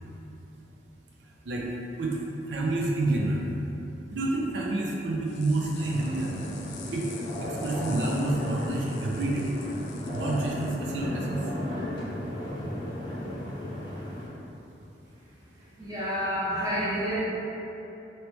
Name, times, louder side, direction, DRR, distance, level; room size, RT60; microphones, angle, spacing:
voice 1, 2.5-3.5 4.1-6.3 6.9-7.0 7.4-9.5 10.1-11.4, right 2 dB, 85° right, -3 dB, 0.4 m, -28 dB
sound 1, 5.3-10.8, left 6 dB, 75° left, 0.3 m, -48 dB
sound 2, 5.7-14.3, left 1 dB, 25° left, 0.6 m, -35 dB
voice 2, 15.5-17.2, equal, 20° right, -10 dB, 0.9 m, -29 dB
2.9 x 2.8 x 3.3 m, 3.0 s
head